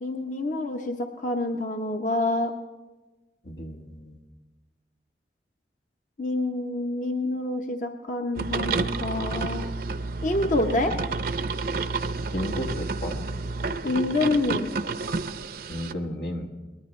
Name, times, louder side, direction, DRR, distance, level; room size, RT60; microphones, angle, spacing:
voice 1, 0.0-2.5 6.2-9.7 10.2-10.9 13.8-14.7, left 2 dB, 45° left, 5 dB, 0.8 m, -27 dB
voice 2, 3.4-4.2 12.3-13.2 15.7-16.5, equal, 85° left, 4 dB, 1.6 m, -33 dB
sound 1, 8.4-15.9, right 3 dB, 55° right, 0.6 m, -30 dB
23.0 x 19.5 x 3.2 m, 1.2 s
head